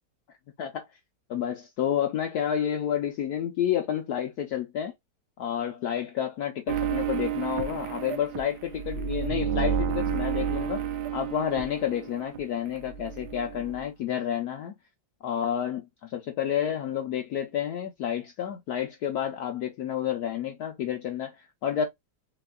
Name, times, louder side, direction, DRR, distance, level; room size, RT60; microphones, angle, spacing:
voice 1, 1.3-4.9 5.4-10.8 11.1-14.7 15.2-21.9, left 9 dB, 65° left, 1.0 m, -30 dB
sound 1, 6.7-12.4 12.7-13.8, right 7 dB, 70° right, 1.1 m, -31 dB
4.1 x 3.9 x 2.2 m
omnidirectional pair, 2.0 m